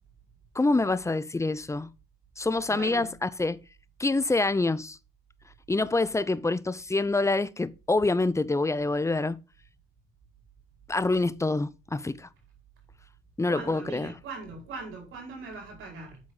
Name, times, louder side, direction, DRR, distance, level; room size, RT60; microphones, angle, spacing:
voice 1, 0.5-1.9 2.4-3.6 4.0-5.0 5.7-9.4 10.9-12.3 13.4-14.1, left 2 dB, 15° left, 0.6 m, -26 dB
voice 2, 2.7-3.1 13.5-16.2, right 4 dB, 85° right, 5.0 m, -40 dB
8.3 x 7.8 x 3.9 m
cardioid pair, 90°, 20 cm